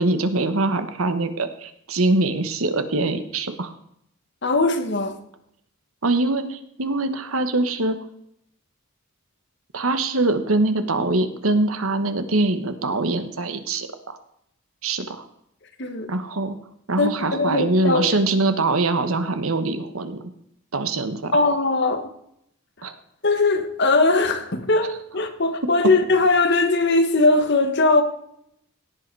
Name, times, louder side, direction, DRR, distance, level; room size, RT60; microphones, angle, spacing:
voice 1, 0.0-3.7 6.0-8.0 9.7-14.2 14.8-15.2 16.1-16.6 16.9-20.2 20.7-21.4 22.8-22.9, right 2 dB, 80° right, 1.3 m, -23 dB
voice 2, 4.4-5.2 15.8-16.1 17.0-18.1 21.3-22.1 23.2-28.0, left 3 dB, 50° left, 1.4 m, -20 dB
17.0 x 7.8 x 4.8 m
head